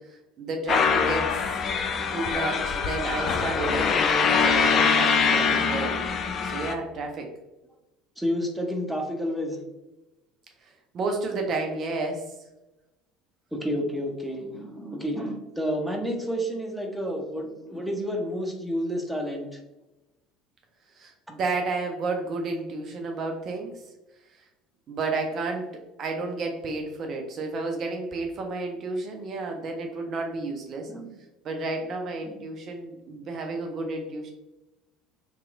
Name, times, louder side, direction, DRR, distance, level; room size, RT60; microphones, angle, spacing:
voice 1, 0.0-1.4 2.1-6.0 6.4-7.3 10.9-12.2 21.0-23.7 24.9-25.7 26.0-30.9 31.4-34.3, right 3 dB, 45° right, 3 dB, 0.4 m, -31 dB
sound 1, 0.7-6.7, left 5 dB, 40° left, 0.3 m, -23 dB
voice 2, 8.2-9.6 13.5-19.6 30.9-31.1 32.3-32.4, equal, ahead, 1 dB, 0.7 m, -30 dB
3.0 x 2.9 x 2.4 m, 1.0 s
figure-of-eight pair, 65°, 0 cm